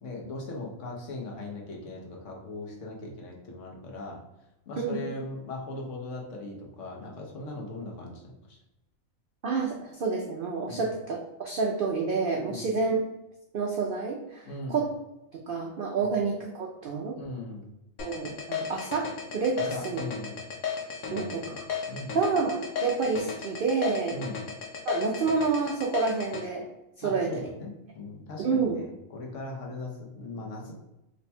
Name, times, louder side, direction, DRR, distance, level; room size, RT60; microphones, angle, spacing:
voice 1, 0.0-4.2 4.7-8.6 10.7-10.9 12.4-12.7 14.4-14.8 16.0-16.1 17.2-17.7 19.6-20.5 21.0-22.2 24.1-24.4 27.0-30.7, left 2 dB, 65° left, 0 dB, 1.1 m, -39 dB
voice 2, 9.4-13.0 13.5-14.9 15.3-17.2 18.0-20.0 21.1-21.7 22.1-24.2 24.9-26.7 27.0-27.4 28.4-28.8, right 4 dB, 75° right, 0 dB, 0.5 m, -29 dB
sound 1, 18.0-26.4, left 7 dB, 90° left, 1.1 m, -34 dB
3.3 x 2.2 x 4.1 m, 0.92 s
omnidirectional pair, 1.5 m